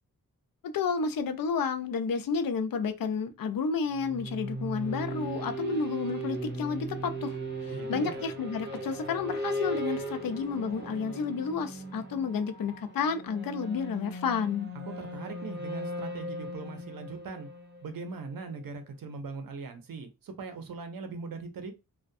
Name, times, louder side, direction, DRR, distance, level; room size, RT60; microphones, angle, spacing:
voice 1, 0.7-7.4 7.6-14.7, left 5 dB, 70° left, 0.5 m, -31 dB
sound 1, 3.9-18.6, right 1 dB, 30° right, 0.7 m, -38 dB
voice 2, 7.6-8.2 14.9-17.5 17.8-21.7, right 4 dB, 70° right, 0.7 m, -40 dB
2.3 x 2.1 x 2.6 m
wide cardioid pair, 80°, 35 cm